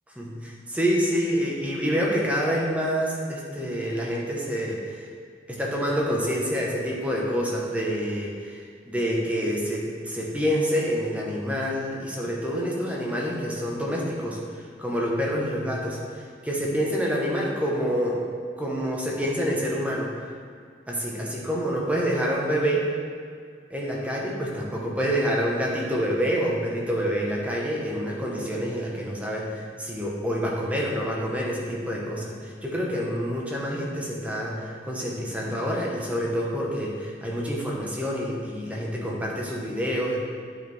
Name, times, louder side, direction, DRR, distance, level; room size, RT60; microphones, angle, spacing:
voice 1, 0.2-5.0 5.5-18.2 18.6-20.3 20.9-22.9 23.7-40.2, equal, 10° right, -3 dB, 1.0 m, -27 dB
9.1 x 4.4 x 3.5 m, 2.1 s
head